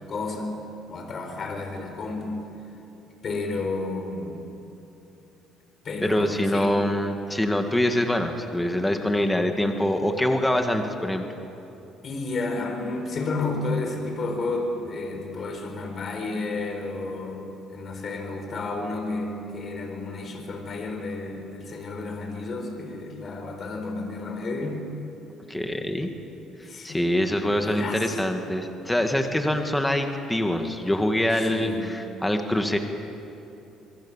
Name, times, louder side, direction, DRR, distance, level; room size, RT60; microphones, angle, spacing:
voice 1, 0.1-0.5 0.9-2.4 3.2-4.5 5.8-6.8 12.0-24.8 26.6-27.1 27.5-28.2 31.4-31.9, left 3 dB, 45° left, 4 dB, 4.2 m, -31 dB
voice 2, 6.0-11.3 25.5-26.1 26.8-32.8, left 1 dB, 5° left, 5 dB, 2.1 m, -24 dB
25.5 x 23.0 x 7.4 m, 2.9 s
cardioid pair, 100°, 0 cm